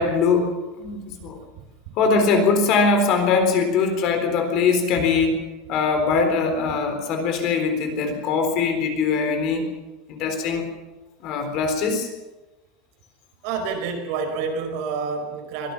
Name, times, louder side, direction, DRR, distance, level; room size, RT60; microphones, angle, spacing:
voice 1, 0.0-1.4 2.0-5.4 5.7-9.7 10.1-10.7 11.2-12.1, left 4 dB, 40° left, 6 dB, 3.9 m, -21 dB
voice 2, 13.4-15.7, right 5 dB, 55° right, 4 dB, 5.1 m, -28 dB
24.0 x 16.5 x 7.1 m, 1.1 s
cardioid pair, 180°, 0 cm